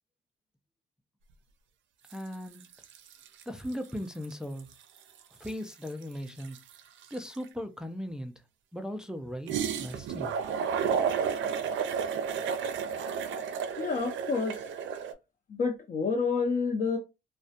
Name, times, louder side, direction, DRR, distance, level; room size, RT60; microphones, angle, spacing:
voice 1, 2.1-2.6 3.5-4.7 5.4-6.6 7.1-8.3 8.7-10.4, equal, 5° right, 0.4 m, -38 dB
sound 1, 2.1-2.3 2.6-3.9 4.2-4.3 4.6-7.4 9.5-15.1, right 7 dB, 70° right, 0.5 m, -32 dB
voice 2, 13.8-14.6 15.5-17.0, left 4 dB, 45° left, 0.6 m, -29 dB
2.3 x 2.1 x 2.7 m
cardioid pair, 90°, 20 cm